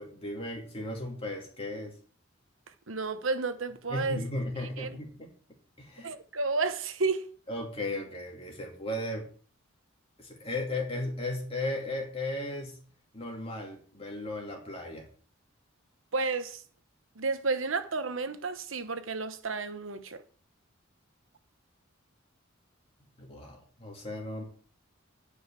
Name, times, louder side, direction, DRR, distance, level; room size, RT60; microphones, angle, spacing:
voice 1, 0.0-2.0 3.9-5.3 5.8-6.1 7.5-9.3 10.2-12.8 13.1-15.1 23.2-24.4, left 1 dB, 30° left, 2.6 m, -36 dB
voice 2, 2.9-4.2 4.8-5.0 6.0-7.3 16.1-16.6 17.2-20.2, right 3 dB, 80° right, 1.1 m, -31 dB
9.8 x 5.3 x 7.4 m
head